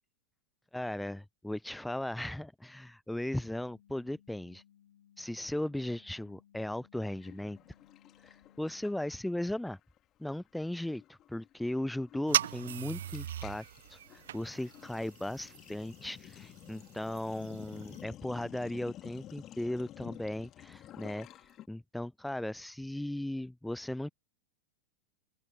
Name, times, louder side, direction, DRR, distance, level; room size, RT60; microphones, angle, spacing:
voice 1, 0.7-4.6 5.2-7.6 8.2-9.8 10.2-13.6 13.9-21.3 21.7-24.1, left 1 dB, 5° left, 0.4 m, -37 dB
sound 1, 3.2-9.2, left 10 dB, 65° left, 6.9 m, -64 dB
Sink (filling or washing), 7.2-9.4 9.7-10.0 10.2-21.7, left 13 dB, 30° left, 2.5 m, -52 dB
sound 2, 12.3-18.0, right 11 dB, 60° right, 0.3 m, -38 dB
open air
figure-of-eight pair, 90°, 0 cm